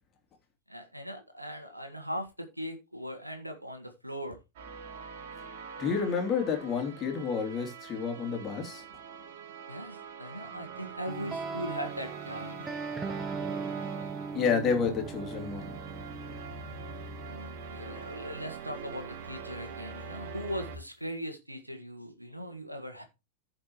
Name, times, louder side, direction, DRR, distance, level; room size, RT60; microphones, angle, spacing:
voice 1, 0.7-4.4 9.7-12.7 17.2-23.0, equal, 90° right, 1.6 m, -39 dB
sound 1, 4.6-20.8, right 5 dB, 55° right, 1.7 m, -44 dB
voice 2, 5.8-8.8 14.3-15.8, left 6 dB, 30° left, 2.9 m, -30 dB
sound 2, 11.1-18.1, right 4 dB, 15° right, 1.0 m, -39 dB
15.0 x 5.3 x 3.1 m
figure-of-eight pair, 90°, 0 cm